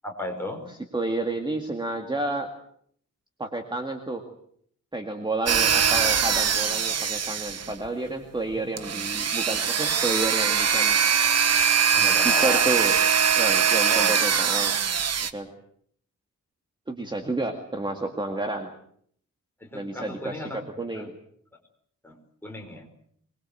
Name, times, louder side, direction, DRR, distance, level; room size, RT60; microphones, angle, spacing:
voice 1, 0.0-0.6 11.9-12.7 13.9-14.2 19.6-21.1 22.0-22.2 22.4-22.9, left 1 dB, 5° left, 2 dB, 5.0 m, -35 dB
voice 2, 0.7-2.5 3.4-4.2 4.9-11.0 12.2-12.9 13.4-14.7 15.2-15.5 16.9-18.7 19.7-21.2, right 2 dB, 15° right, 4 dB, 2.1 m, -30 dB
sound 1, 5.5-7.9 8.8-15.3, right 7 dB, 55° right, 1.3 m, -22 dB
24.5 x 21.5 x 7.9 m, 0.65 s
wide cardioid pair, 165°, 30 cm